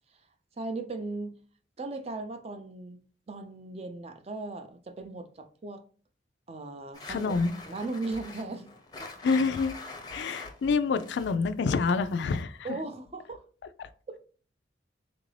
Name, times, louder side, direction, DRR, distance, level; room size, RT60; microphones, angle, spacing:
voice 1, 0.6-1.4 1.8-3.0 3.3-5.8 6.5-7.3 7.6-8.7 9.0-9.1 12.6-13.4 14.1-14.2, right 3 dB, 35° right, 0.4 m, -37 dB
sound 1, 6.9-12.6, left 3 dB, 20° left, 0.6 m, -45 dB
voice 2, 7.1-7.5 9.2-9.7 10.1-12.6, left 4 dB, 70° left, 0.3 m, -27 dB
3.7 x 2.5 x 3.2 m
head